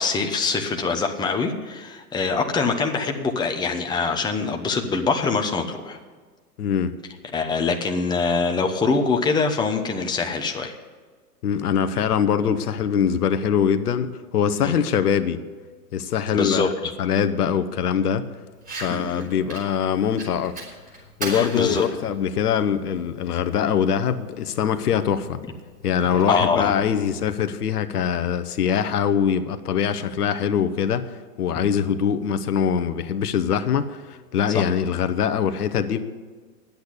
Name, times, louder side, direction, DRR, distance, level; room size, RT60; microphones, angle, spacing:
voice 1, 0.0-6.0 7.3-10.8 14.6-14.7 16.3-16.9 18.9-19.3 21.3-21.8 26.3-26.7 34.5-34.6, left 4 dB, 10° left, 4 dB, 0.9 m, -24 dB
voice 2, 6.6-6.9 11.4-15.4 15.9-16.7 17.0-18.3 18.8-20.6 21.2-25.4 25.8-31.1 31.4-36.0, left 8 dB, 75° left, 10 dB, 1.0 m, -23 dB
Fire, 18.5-27.5, right 1 dB, 15° right, 5.2 m, -39 dB
10.5 x 8.2 x 10.0 m, 1.4 s
hypercardioid pair, 115°, 46 cm